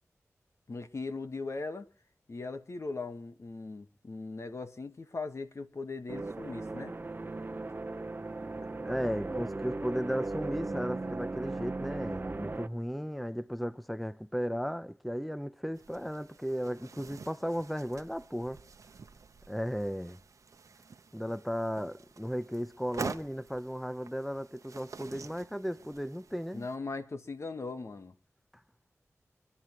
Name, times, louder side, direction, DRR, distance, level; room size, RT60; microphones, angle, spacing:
voice 1, 0.7-1.9 2.3-6.9 26.5-28.1, left 3 dB, 55° left, 1.4 m, -39 dB
sound 1, 6.1-12.7, right 2 dB, 35° right, 0.9 m, -37 dB
voice 2, 8.8-18.6 19.5-20.2 21.1-26.7, equal, ahead, 0.6 m, -35 dB
sound 2, 15.7-26.8, right 5 dB, 75° right, 0.9 m, -47 dB
26.0 x 11.0 x 3.0 m
cardioid pair, 50°, 6 cm